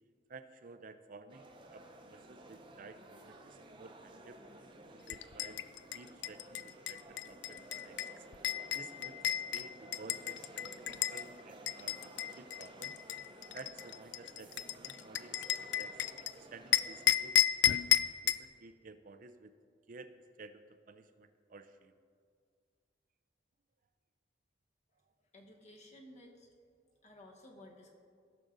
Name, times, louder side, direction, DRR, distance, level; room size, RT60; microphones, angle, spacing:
voice 1, 0.3-4.4 4.9-5.6 5.9-8.0 8.7-13.0 13.5-17.3 17.6-17.8 18.2-19.5 19.9-21.9, right 3 dB, 45° right, 10 dB, 0.5 m, -54 dB
sound 1, 1.3-17.1, right 1 dB, 25° right, 0.8 m, -54 dB
sound 2, 5.1-11.2 11.7-16.3 16.7-18.5, left 12 dB, 70° left, 0.3 m, -33 dB
voice 2, 25.3-26.5 27.0-27.9, left 1 dB, 40° left, 0 dB, 1.4 m, -55 dB
16.0 x 6.5 x 4.0 m, 2.1 s
head